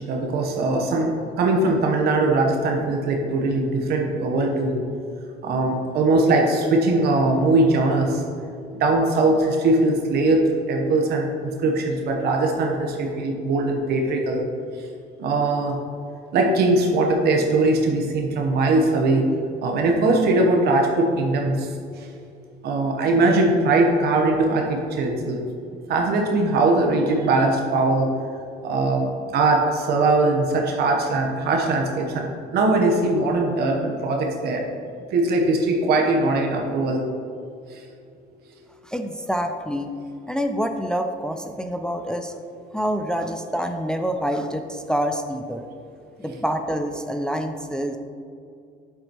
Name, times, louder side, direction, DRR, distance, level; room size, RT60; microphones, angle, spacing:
voice 1, 0.0-4.8 5.4-8.2 8.8-14.4 15.2-15.8 16.3-19.3 19.6-21.7 22.6-25.4 25.9-28.1 28.6-29.1 29.3-34.6 35.1-37.0, right 2 dB, 70° right, 1 dB, 1.0 m, -21 dB
voice 2, 38.8-39.9 40.3-42.3 42.7-45.6 46.2-48.0, equal, 5° left, 5 dB, 0.4 m, -26 dB
8.0 x 7.4 x 3.0 m, 2.4 s
cardioid pair, 110°, 17 cm